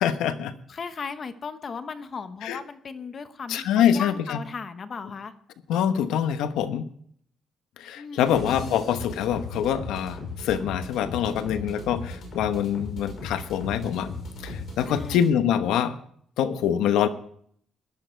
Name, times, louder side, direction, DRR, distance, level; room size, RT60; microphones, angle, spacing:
voice 1, 0.0-0.5 2.4-2.6 3.5-4.4 5.7-6.8 7.8-14.1 14.4-16.0 16.4-17.1, left 9 dB, 90° left, 10 dB, 1.1 m, -25 dB
voice 2, 0.7-5.3 7.9-8.8 14.8-15.2, left 5 dB, 40° left, 10 dB, 1.1 m, -36 dB
sound 1, 8.3-15.3, left 3 dB, 55° left, 6.1 m, -37 dB
14.5 x 11.5 x 4.5 m, 0.63 s
cardioid pair, 125°, 0 cm